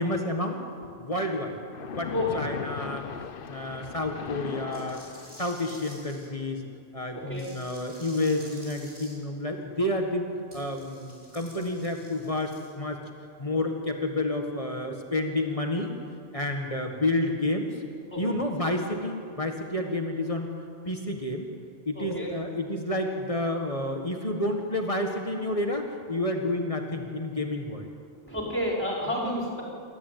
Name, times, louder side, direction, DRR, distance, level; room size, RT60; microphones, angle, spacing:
voice 1, 0.0-1.6 2.0-3.1 3.5-5.0 5.4-6.6 6.9-10.3 10.5-13.0 13.4-15.9 16.3-17.7 18.2-20.5 20.9-21.5 21.9-27.9, left 1 dB, 35° left, 2 dB, 1.7 m, -30 dB
Splash splatter, 1.7-5.7, left 7 dB, 65° left, 0.9 m, -38 dB
voice 2, 2.1-2.4 7.1-7.5 18.1-18.2 21.9-22.3 28.3-29.6, left 1 dB, 10° left, -4 dB, 4.9 m, -30 dB
sound 1, 4.7-6.3 7.3-9.1 10.5-12.7, right 1 dB, 70° right, 6.9 m, -50 dB
28.0 x 14.0 x 9.3 m, 2.4 s
omnidirectional pair, 1.0 m